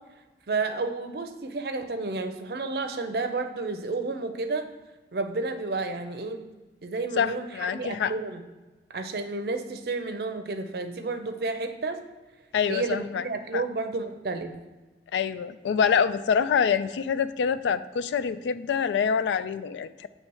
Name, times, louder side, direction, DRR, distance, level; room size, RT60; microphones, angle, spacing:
voice 1, 0.5-4.7 5.1-6.4 6.8-8.4 8.9-12.0 12.7-14.6, right 3 dB, 60° right, 7 dB, 0.5 m, -31 dB
voice 2, 7.2-8.1 12.5-13.3 13.5-13.6 15.1-20.1, left 7 dB, 90° left, 14 dB, 0.3 m, -26 dB
7.5 x 3.2 x 4.6 m, 1.2 s
head